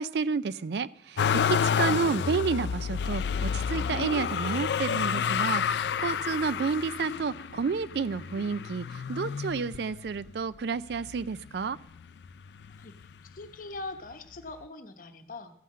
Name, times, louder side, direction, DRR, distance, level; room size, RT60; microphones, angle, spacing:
voice 1, 0.0-11.8, right 5 dB, 65° right, 17 dB, 0.4 m, -30 dB
Motor vehicle (road), 1.2-10.3 10.9-11.7 12.0-13.1 14.1-14.2, left 7 dB, 70° left, 0.4 m, -30 dB
voice 2, 12.8-15.5, left 2 dB, 50° left, 8 dB, 0.9 m, -42 dB
14.0 x 5.7 x 7.3 m, 0.75 s
head